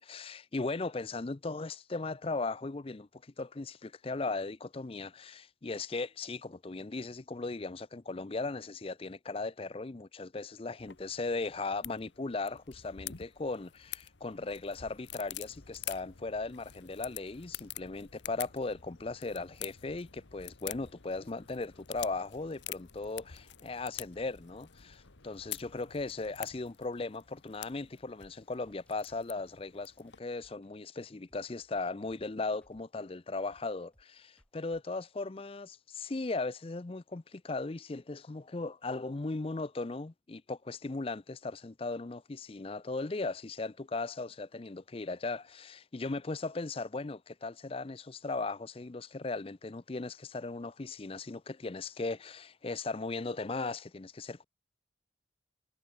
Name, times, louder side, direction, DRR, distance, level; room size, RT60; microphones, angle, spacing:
voice 1, 0.0-54.4, left 3 dB, 30° left, 0.5 m, -37 dB
sound 1, 10.8-30.2, left 13 dB, 65° left, 1.2 m, -47 dB
sound 2, 14.1-26.6, left 2 dB, 85° left, 1.6 m, -60 dB
sound 3, 28.1-34.8, equal, 5° left, 4.2 m, -66 dB
head